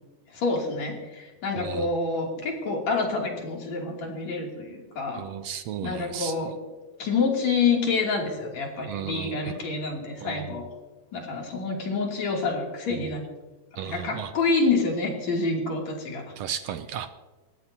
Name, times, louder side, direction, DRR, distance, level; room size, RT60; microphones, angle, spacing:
voice 1, 0.3-5.3 5.8-6.5 7.0-10.7 11.1-13.2 13.8-16.3, left 4 dB, 70° left, -1 dB, 4.1 m, -27 dB
voice 2, 1.6-1.9 5.1-6.5 8.9-9.7 10.2-10.6 13.8-14.3 16.4-17.1, right 9 dB, 75° right, 9 dB, 1.7 m, -35 dB
29.5 x 15.0 x 2.8 m, 1.3 s
omnidirectional pair, 3.3 m